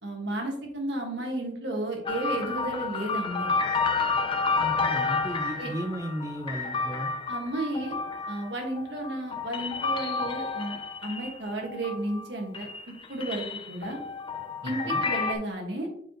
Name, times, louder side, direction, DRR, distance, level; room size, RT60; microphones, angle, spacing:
voice 1, 0.0-3.5 5.6-5.7 7.3-8.0 8.3-10.7 11.0-12.7 13.1-14.0 14.6-15.9, right 1 dB, 75° right, 1 dB, 1.7 m, -33 dB
sound 1, 2.0-12.3 12.5-15.3, left 4 dB, 30° left, 0.6 m, -30 dB
voice 2, 4.6-7.1 14.6-15.0, right 1 dB, 15° right, 4 dB, 0.6 m, -35 dB
6.7 x 4.8 x 3.0 m, 0.65 s
head